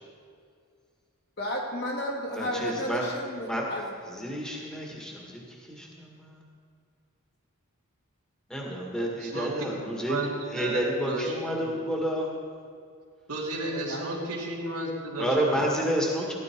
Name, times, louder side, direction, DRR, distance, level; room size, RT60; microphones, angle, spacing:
voice 1, 1.4-3.9 13.9-14.1, equal, 50° left, -2 dB, 2.6 m, -32 dB
voice 2, 2.3-3.1 3.5-3.6 4.1-6.4 8.5-10.2 10.5-12.3 15.2-16.3, equal, 5° left, -2 dB, 1.8 m, -30 dB
voice 3, 9.2-9.5 10.1-10.3 10.5-11.7 13.3-15.6, right 2 dB, 80° right, -5 dB, 2.5 m, -33 dB
16.5 x 11.5 x 4.6 m, 2.2 s
head